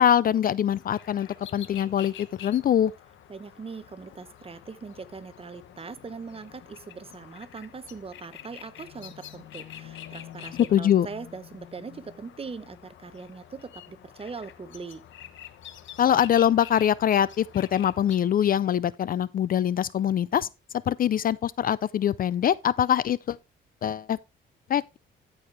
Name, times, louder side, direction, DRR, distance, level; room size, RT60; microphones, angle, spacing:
voice 1, 0.0-2.9 10.7-11.1 16.0-20.5 20.9-23.4 23.8-24.2 24.7-25.0, left 10 dB, 45° left, 0.4 m, -23 dB
sound 1, 0.7-18.2, left 11 dB, 70° left, 0.9 m, -47 dB
voice 2, 3.3-15.0, right 4 dB, 30° right, 0.8 m, -41 dB
13.5 x 4.9 x 3.3 m
cardioid pair, 90°, 20 cm